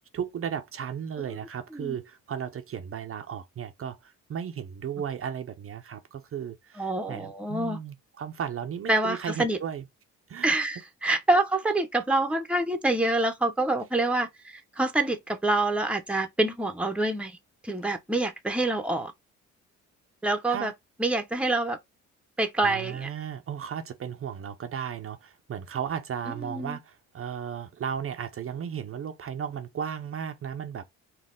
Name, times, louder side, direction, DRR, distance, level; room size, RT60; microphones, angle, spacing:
voice 1, 0.1-9.8 10.3-10.5 20.5-20.7 22.6-30.8, right 8 dB, 45° right, 0.6 m, -35 dB
voice 2, 6.8-7.8 8.9-9.6 10.4-17.4 17.6-19.1 20.2-20.7 21.0-21.8 22.4-23.1 26.3-26.8, right 2 dB, 5° right, 0.8 m, -26 dB
4.0 x 2.4 x 3.7 m
cardioid pair, 90°, 30 cm